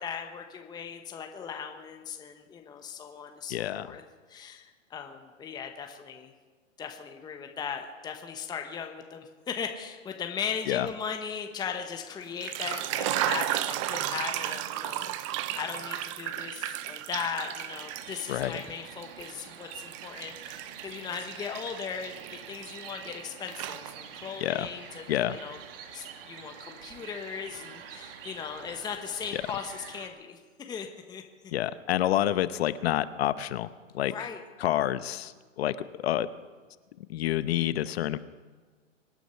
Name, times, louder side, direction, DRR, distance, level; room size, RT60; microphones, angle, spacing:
voice 1, 0.0-4.0 4.3-6.3 6.8-22.1 22.5-25.0 25.3-25.6 25.9-31.2 34.1-34.4, left 7 dB, 10° left, 5 dB, 1.0 m, -38 dB
voice 2, 3.5-3.9 10.7-10.9 18.3-18.6 24.4-24.7 25.1-25.4 29.3-29.4 31.5-34.3 34.6-36.3 37.1-38.2, left 12 dB, 50° left, 15 dB, 0.9 m, -28 dB
sound 1, 12.2-18.6 19.0-23.2 23.5-24.3, right 13 dB, 25° right, 0.5 m, -34 dB
sound 2, 17.7-30.1, right 8 dB, 45° right, 1.7 m, -46 dB
24.5 x 9.3 x 5.7 m, 1.4 s
hypercardioid pair, 130°, 39 cm